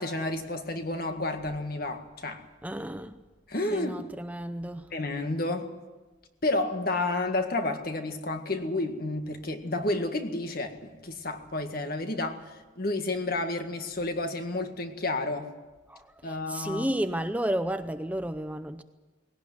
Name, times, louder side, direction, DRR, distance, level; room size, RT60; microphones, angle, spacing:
voice 1, 0.0-2.4 3.5-4.0 4.9-5.7 6.4-15.5 16.2-16.9, left 2 dB, 50° left, 1.9 m, -31 dB
voice 2, 2.6-3.1 3.7-4.9 15.9-18.8, right 1 dB, 10° right, 0.6 m, -32 dB
19.0 x 17.5 x 9.4 m
head